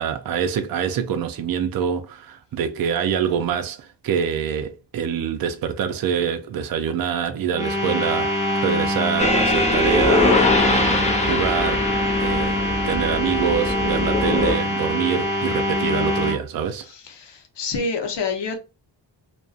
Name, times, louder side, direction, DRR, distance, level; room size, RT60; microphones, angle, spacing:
voice 1, 0.0-11.9 12.2-16.9, right 8 dB, 55° right, 0.5 m, -25 dB
sound 1, 7.5-16.4, left 1 dB, 5° right, 0.8 m, -24 dB
sound 2, 9.2-14.5, left 2 dB, 15° left, 0.4 m, -22 dB
voice 2, 16.8-18.6, left 4 dB, 75° left, 0.8 m, -28 dB
2.3 x 2.2 x 2.5 m
wide cardioid pair, 110°, 42 cm